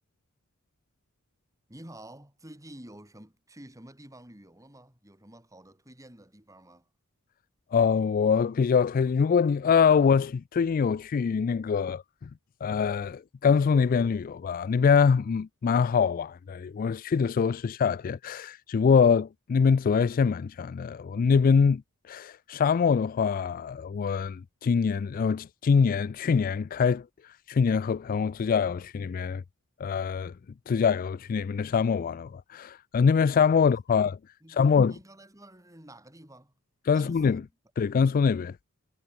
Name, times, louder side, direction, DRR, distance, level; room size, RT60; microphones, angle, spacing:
voice 1, 1.7-6.9 33.6-34.0 34.4-36.5 36.9-37.5, right 1 dB, 15° right, 4.9 m, -50 dB
voice 2, 7.7-12.3 12.6-21.8 22.1-27.0 27.5-29.4 29.8-30.3 30.7-34.2 34.5-34.9 36.9-37.4 37.8-38.5, left 6 dB, 40° left, 0.3 m, -24 dB
head